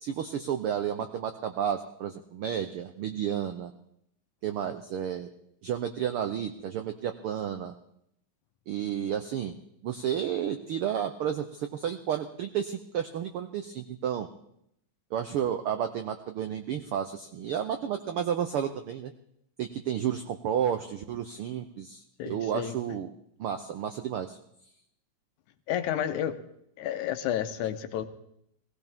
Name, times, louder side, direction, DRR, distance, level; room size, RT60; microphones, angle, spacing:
voice 1, 0.0-3.7 4.4-5.3 5.6-7.7 8.7-9.5 9.8-14.3 15.1-19.1 19.6-23.1 23.4-24.4, right 9 dB, 85° right, 7 dB, 1.2 m, -31 dB
voice 2, 22.2-22.8 25.7-26.4 26.8-28.1, left 10 dB, 85° left, 9 dB, 2.3 m, -31 dB
19.0 x 16.0 x 3.6 m, 0.74 s
omnidirectional pair, 3.4 m